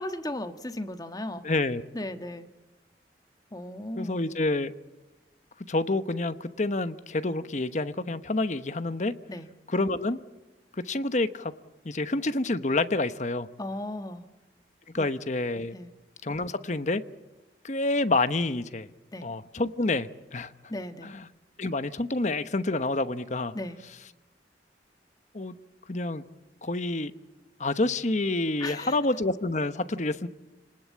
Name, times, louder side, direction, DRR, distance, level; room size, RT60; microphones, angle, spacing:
voice 1, 0.0-1.4 1.9-2.5 3.5-4.2 9.3-9.5 13.6-14.2 15.0-15.1 15.7-15.9 19.1-19.3 20.7-21.1 23.5-23.8 28.6-29.0, left 1 dB, 20° left, 8 dB, 1.4 m, -36 dB
voice 2, 1.4-1.8 4.0-4.7 5.7-9.1 9.7-10.2 10.8-11.5 11.8-13.5 14.9-15.8 16.2-17.0 17.6-18.9 19.2-20.5 21.0-21.2 21.6-23.5 25.3-25.5 25.9-26.2 26.6-27.1 27.6-30.3, left 2 dB, 40° left, 12 dB, 1.0 m, -28 dB
28.5 x 19.5 x 8.5 m, 1.1 s
head